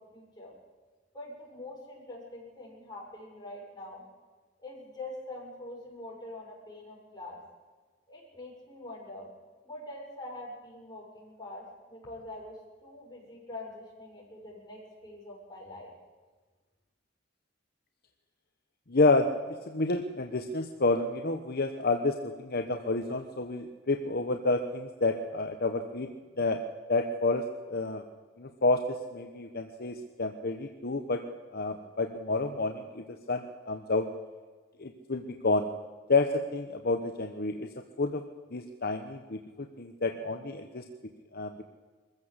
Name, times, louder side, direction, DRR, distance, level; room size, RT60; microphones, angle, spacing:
voice 1, 0.1-0.5 1.1-4.0 4.6-7.4 8.1-9.3 9.6-15.9, left 2 dB, 20° left, -3 dB, 7.2 m, -44 dB
voice 2, 18.9-19.3 19.7-26.1 26.4-26.6 26.9-27.4 27.7-28.0 28.4-31.2 31.5-34.1 34.8-35.7 36.1-37.7 38.0-38.2 38.5-40.8 41.3-41.6, left 3 dB, 55° left, 5 dB, 1.2 m, -29 dB
23.0 x 15.0 x 8.1 m, 1.4 s
head